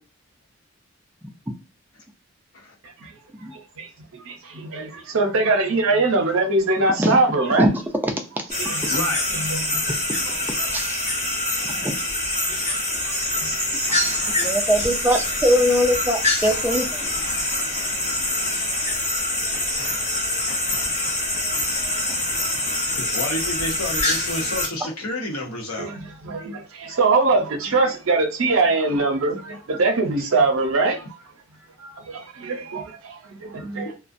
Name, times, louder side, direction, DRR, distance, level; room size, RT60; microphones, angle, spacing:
voice 1, 3.5-7.7 8.6-8.9 9.3-9.8 10.3-10.4 11.5-11.9 12.5-13.5 25.8-31.1 31.8-33.9, right 3 dB, 70° right, 0.6 m, -23 dB
sound 1, 8.5-24.7, left 1 dB, 30° left, 0.8 m, -25 dB
voice 2, 8.9-9.2 13.9-14.6 16.2-18.9 19.8-19.9 20.5-21.1 21.5-25.9, left 1 dB, 90° left, 0.8 m, -33 dB
voice 3, 11.6-12.0 14.4-17.1 24.8-24.9, equal, 10° right, 0.3 m, -21 dB
2.3 x 2.1 x 2.5 m
head